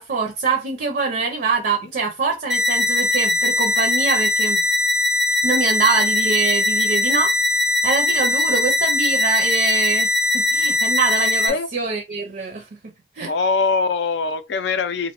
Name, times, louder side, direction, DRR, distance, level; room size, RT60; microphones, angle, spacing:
voice 1, 0.0-4.6 5.4-7.3 7.8-13.3, right 4 dB, 55° right, 0.5 m, -24 dB
sound 1, 2.5-11.5, left 2 dB, ahead, 0.4 m, -20 dB
voice 2, 8.2-8.6 11.4-11.7 13.3-15.1, left 4 dB, 75° left, 0.4 m, -23 dB
2.9 x 2.1 x 2.9 m
head